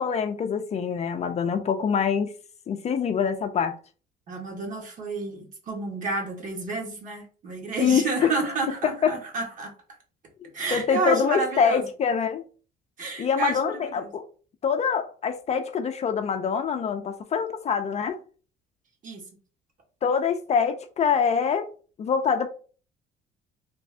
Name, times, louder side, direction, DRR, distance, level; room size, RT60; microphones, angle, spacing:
voice 1, 0.0-2.3 2.7-3.8 7.8-8.3 9.0-9.1 10.7-12.4 13.2-14.3 14.6-18.2 20.0-21.7 22.0-22.5, left 6 dB, 40° left, 0.5 m, -25 dB
voice 2, 4.3-9.7 10.5-11.9 13.0-14.1 19.0-19.2, right 3 dB, 50° right, 1.5 m, -30 dB
3.3 x 2.6 x 3.3 m
cardioid pair, 110°, 17 cm